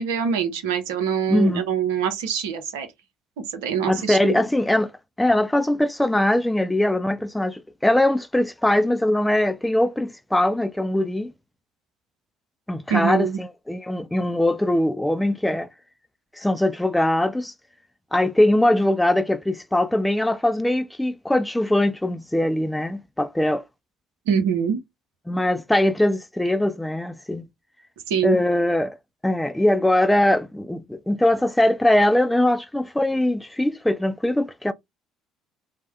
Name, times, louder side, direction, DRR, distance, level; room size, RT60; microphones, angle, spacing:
voice 1, 0.0-2.9 3.5-4.4 12.9-13.4 24.3-24.8 28.1-28.4, right 7 dB, 75° right, 0.7 m, -24 dB
voice 2, 1.3-1.6 3.9-4.9 5.2-11.3 12.7-15.7 16.4-17.5 18.1-23.6 25.3-27.4 28.2-29.0 29.2-34.7, left 1 dB, 5° left, 0.5 m, -21 dB
3.2 x 2.1 x 2.9 m
hypercardioid pair, 60°, 0 cm